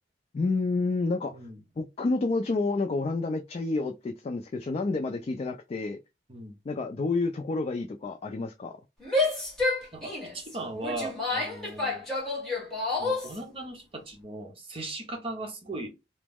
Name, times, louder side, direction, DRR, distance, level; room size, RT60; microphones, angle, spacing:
voice 1, 0.3-1.4 1.8-6.0 6.7-8.8, left 3 dB, 35° left, 0.3 m, -29 dB
Female speech woman speaking / Yell, 9.0-13.4, left 2 dB, 5° left, 1.3 m, -29 dB
voice 2, 9.9-12.1 13.0-15.9, right 2 dB, 30° right, 0.8 m, -38 dB
2.9 x 2.0 x 3.4 m
head